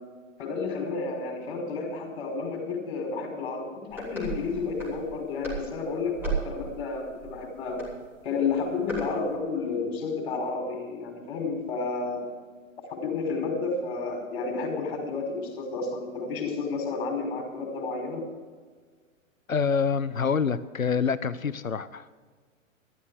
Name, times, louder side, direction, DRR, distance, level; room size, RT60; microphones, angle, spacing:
voice 1, 0.4-7.8 8.2-12.2 12.9-18.2, left 4 dB, 40° left, 1 dB, 5.4 m, -31 dB
sound 1, 3.9-9.2, right 3 dB, 5° right, 5.6 m, -36 dB
voice 2, 19.5-22.1, left 6 dB, 80° left, 15 dB, 0.8 m, -26 dB
15.0 x 13.0 x 4.8 m, 1.5 s
figure-of-eight pair, 115°, 40 cm